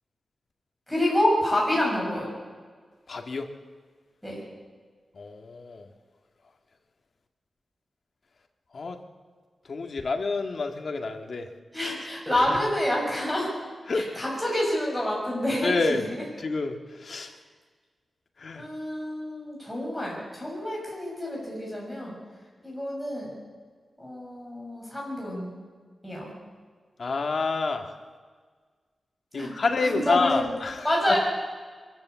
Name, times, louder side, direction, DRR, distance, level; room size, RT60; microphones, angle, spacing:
voice 1, 0.9-2.3 4.2-4.4 11.7-13.5 14.2-15.7 18.5-22.1 22.6-23.3 24.0-25.6 26.0-26.3 29.3-29.5 29.8-30.3 30.8-31.2, left 1 dB, ahead, -3 dB, 7.0 m, -28 dB
voice 2, 3.1-3.5 5.1-5.9 8.7-9.0 9.6-11.5 11.8-12.6 13.9-14.2 15.6-16.1 16.4-17.3 18.4-18.7 27.0-28.0 29.3-31.2, left 3 dB, 50° left, 4 dB, 1.7 m, -29 dB
23.0 x 14.0 x 8.3 m, 1.5 s
wide cardioid pair, 165°, 0 cm